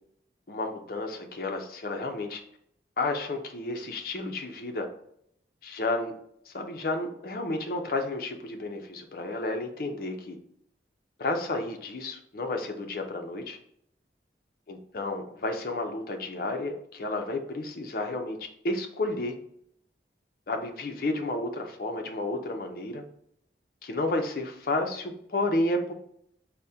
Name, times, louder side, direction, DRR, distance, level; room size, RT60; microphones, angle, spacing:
voice 1, 0.5-2.4 3.0-4.9 5.6-6.1 6.5-10.4 11.2-13.6 14.7-19.3 20.5-23.0 23.8-25.9, left 2 dB, 55° left, 4 dB, 0.5 m, -31 dB
4.1 x 2.1 x 3.5 m, 0.70 s
head